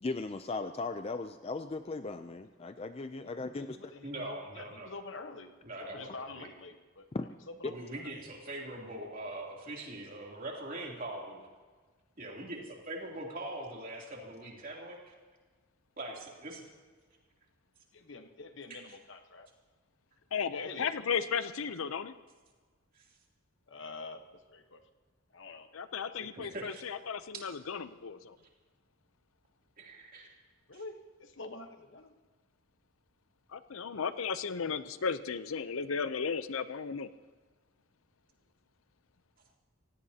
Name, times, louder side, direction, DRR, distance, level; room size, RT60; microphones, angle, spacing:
voice 1, 0.0-3.8 7.1-7.3, left 3 dB, 30° left, 9 dB, 0.4 m, -37 dB
voice 2, 3.2-5.5 5.8-7.1 7.5-8.1 17.9-19.5 20.5-21.4 22.1-22.2 23.7-24.2 24.5-24.8 25.3-25.7 26.0-26.3 30.7-32.2, left 3 dB, 60° left, 7 dB, 1.1 m, -47 dB
voice 3, 4.0-4.9 5.6-6.5 7.7-11.5 12.2-15.0 16.0-16.7 18.7-18.8 22.9-23.1 26.3-26.8 29.8-30.3, right 1 dB, 40° right, -2 dB, 3.0 m, -42 dB
voice 4, 20.3-22.1 25.7-28.4 33.5-37.1, left 6 dB, 80° left, 13 dB, 0.6 m, -35 dB
26.0 x 17.0 x 2.8 m, 1.5 s
head